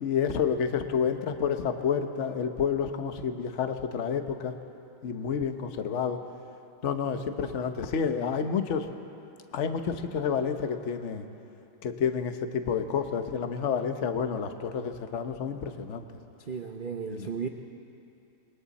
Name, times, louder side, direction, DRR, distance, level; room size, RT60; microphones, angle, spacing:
voice 1, 0.0-4.5 5.0-6.2 6.8-8.9 9.5-11.2 11.8-16.0 17.1-17.3, left 7 dB, 45° left, 7 dB, 1.1 m, -29 dB
voice 2, 16.5-17.5, right 6 dB, 65° right, 4 dB, 0.5 m, -35 dB
28.0 x 22.0 x 4.2 m, 2.8 s
omnidirectional pair, 2.1 m